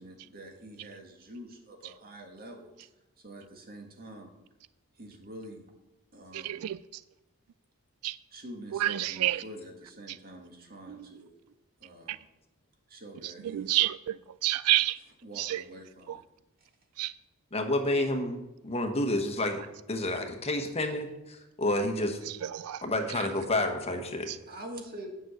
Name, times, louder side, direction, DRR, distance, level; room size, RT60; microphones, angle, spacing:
voice 1, 0.0-2.7 3.2-4.3 4.9-5.6 6.1-6.6 8.3-11.3 11.8-12.2 12.9-13.8 15.2-16.2 24.5-25.1, right 1 dB, 45° right, 1.8 m, -46 dB
voice 2, 6.3-6.8 8.0-8.2 8.7-9.4 10.9-11.0 12.1-12.2 13.2-14.2 14.4-15.0 15.4-15.6 16.1-16.2 17.0-17.1 22.3-22.8 24.3-24.4, right 14 dB, 75° right, 0.3 m, -29 dB
voice 3, 17.5-18.4 18.6-19.6 19.9-22.2 22.8-24.3, left 1 dB, 30° left, 1.1 m, -29 dB
9.2 x 6.1 x 7.8 m
head